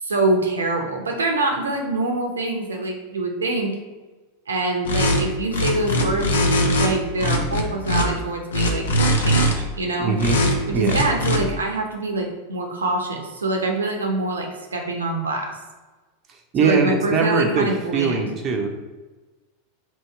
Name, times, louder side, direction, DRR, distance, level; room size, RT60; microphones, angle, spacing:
voice 1, 0.0-3.8 4.5-6.3 6.6-10.1 10.7-15.6 16.6-18.3, right 2 dB, 80° right, 2 dB, 0.6 m, -25 dB
sound 1, 4.9-5.2 5.5-6.9 7.2-8.0 8.5-9.5 10.2-10.5 10.8-11.4, equal, 75° left, 0.6 m, -20 dB
voice 2, 10.0-11.0 16.5-18.7, right 5 dB, 35° right, 3 dB, 0.6 m, -22 dB
3.0 x 2.8 x 4.5 m, 1.2 s
figure-of-eight pair, 90°, 0 cm